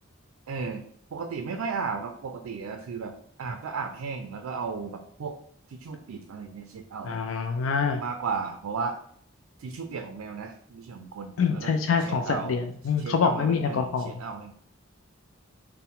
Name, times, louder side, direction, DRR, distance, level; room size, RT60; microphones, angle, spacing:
voice 1, 0.5-0.8 1.1-3.1 3.4-5.4 5.7-7.2 8.0-9.0 9.6-11.7 12.0-12.6 13.0-14.5, right 5 dB, 85° right, 5 dB, 0.4 m, -34 dB
voice 2, 7.0-8.0 11.4-14.1, left 5 dB, 65° left, 4 dB, 0.4 m, -25 dB
4.2 x 2.1 x 3.7 m, 0.64 s
head